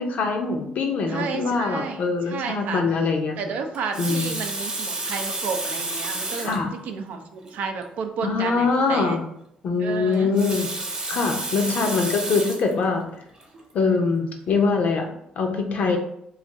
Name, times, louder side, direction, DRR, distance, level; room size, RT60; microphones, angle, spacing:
voice 1, 0.0-3.4 4.0-4.3 6.4-6.7 8.2-9.2 9.6-10.7 11.1-13.1 13.7-15.1 15.4-16.0, left 4 dB, 60° left, 3 dB, 0.6 m, -23 dB
voice 2, 1.0-2.8 3.4-9.2 9.8-10.3 11.5-11.9, right 5 dB, 75° right, 5 dB, 0.4 m, -32 dB
Water tap faucet, 3.7-6.7 7.4-7.5 7.8-7.9 10.1-12.7 13.4-13.6, right 2 dB, 30° right, 0.9 m, -30 dB
2.5 x 2.4 x 4.0 m, 0.74 s
cardioid pair, 95°, 3 cm